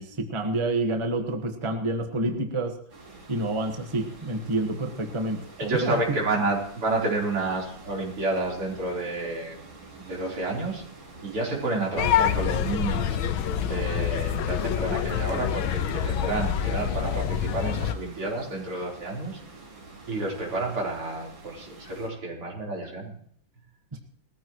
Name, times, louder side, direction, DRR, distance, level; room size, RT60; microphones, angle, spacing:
voice 1, 0.0-2.8 3.3-6.0 23.9-24.0, right 2 dB, 15° right, 4 dB, 1.3 m, -28 dB
sound 1, 2.9-22.1, right 2 dB, 65° right, 5.5 m, -47 dB
voice 2, 5.6-9.6 10.0-10.8 11.2-13.2 13.6-19.4 20.1-23.2, right 2 dB, 85° right, -2 dB, 5.0 m, -30 dB
sound 2, 12.0-17.9, left 9 dB, 70° left, 1.6 m, -26 dB
20.0 x 14.5 x 3.1 m, 0.64 s
omnidirectional pair, 2.4 m